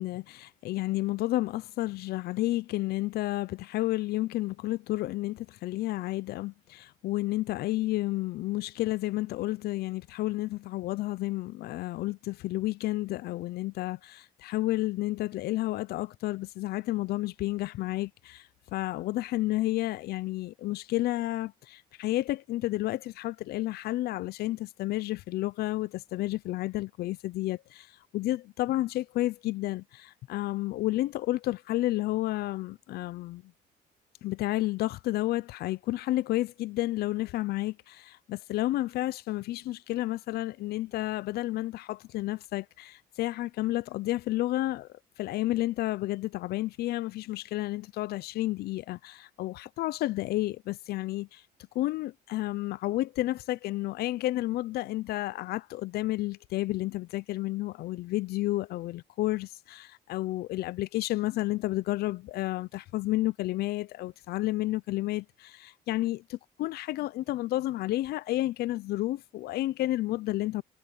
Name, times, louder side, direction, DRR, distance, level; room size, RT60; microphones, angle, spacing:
voice 1, 0.0-27.9 28.1-33.5 34.2-44.9 45.2-51.4 51.7-70.6, left 16 dB, 70° left, 0.5 m, -31 dB
cardioid pair, 110°, 17 cm